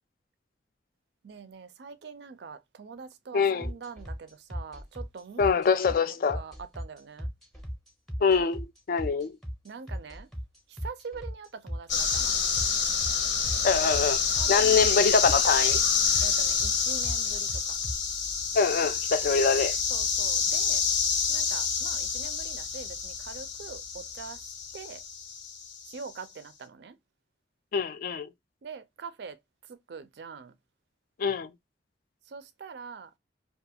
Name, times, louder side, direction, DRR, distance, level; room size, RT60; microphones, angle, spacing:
voice 1, 1.2-6.0 6.3-7.3 9.6-10.3 10.8-12.3 14.4-14.9 16.2-17.5 19.9-20.8 21.3-24.4 24.7-25.0 25.9-26.9 28.6-29.4 29.7-30.5 32.3-33.1, right 5 dB, 65° right, 0.4 m, -43 dB
voice 2, 3.3-3.7 5.4-6.4 8.2-9.3 13.6-14.2 14.5-15.8 18.5-19.8 27.7-28.3 31.2-31.5, left 5 dB, 50° left, 0.3 m, -24 dB
sound 1, 3.6-17.9, equal, ahead, 0.6 m, -36 dB
sound 2, 11.9-25.9, left 6 dB, 90° left, 0.8 m, -28 dB
2.4 x 2.3 x 2.7 m
head